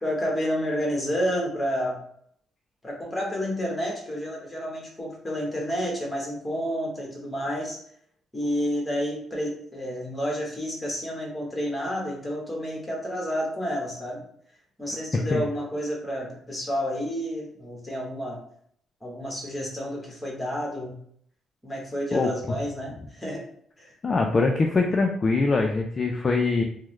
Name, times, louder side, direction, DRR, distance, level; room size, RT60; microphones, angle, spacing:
voice 1, 0.0-2.0 2.8-7.8 8.3-14.2 14.8-18.4 19.0-21.0 21.6-23.4 23.8-23.9, equal, 15° left, -2 dB, 1.2 m, -30 dB
voice 2, 22.1-22.6 24.0-26.6, left 3 dB, 35° left, 2 dB, 0.3 m, -23 dB
3.4 x 2.0 x 3.1 m, 0.66 s
cardioid pair, 90°, 0 cm